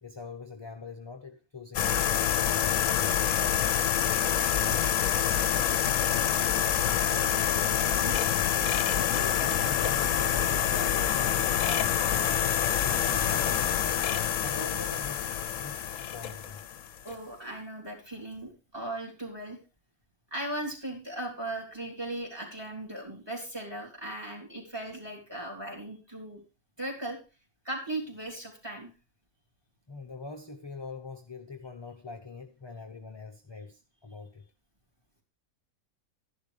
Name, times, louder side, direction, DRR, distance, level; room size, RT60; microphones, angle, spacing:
voice 1, 0.0-3.1 9.0-14.1 14.4-16.6 29.9-34.4, left 4 dB, 25° left, 4 dB, 0.7 m, -43 dB
sound 1, 1.7-17.1, left 10 dB, 65° left, 1.0 m, -26 dB
voice 2, 4.3-5.0 7.1-8.5 17.0-19.6 20.3-26.4 26.8-27.2 27.6-28.9, right 1 dB, 15° right, 2 dB, 3.3 m, -38 dB
12.0 x 11.0 x 3.3 m, 0.33 s
omnidirectional pair, 1.6 m